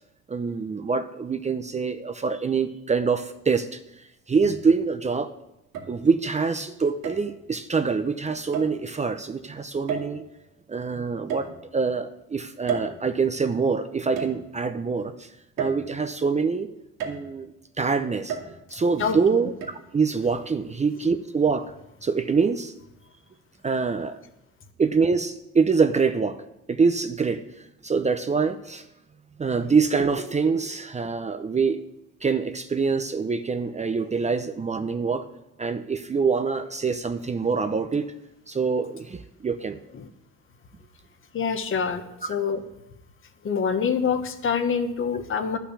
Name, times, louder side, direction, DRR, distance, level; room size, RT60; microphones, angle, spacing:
voice 1, 0.3-5.3 5.9-10.2 10.7-15.3 15.6-16.7 17.0-17.5 17.8-19.5 19.9-21.6 22.0-22.7 23.6-24.2 24.8-26.4 26.7-28.9 29.4-31.8 32.2-35.3 35.6-38.1 38.5-39.8, right 5 dB, 20° right, 9 dB, 0.6 m, -25 dB
sound 1, 3.3-3.4 4.4-5.0 5.7-6.4 7.0-7.4 8.5-8.8 9.9-10.4 11.3-12.0 12.7-13.5 14.2-14.8 15.6-16.3 17.0-17.5 18.3-18.9 19.6-19.7, right 6 dB, 85° right, 2.1 m, -34 dB
voice 2, 19.0-19.4 39.9-40.1 41.3-42.6 43.4-45.6, left 6 dB, 40° left, 8 dB, 1.3 m, -26 dB
11.0 x 5.9 x 8.3 m, 0.89 s
cardioid pair, 105°, 31 cm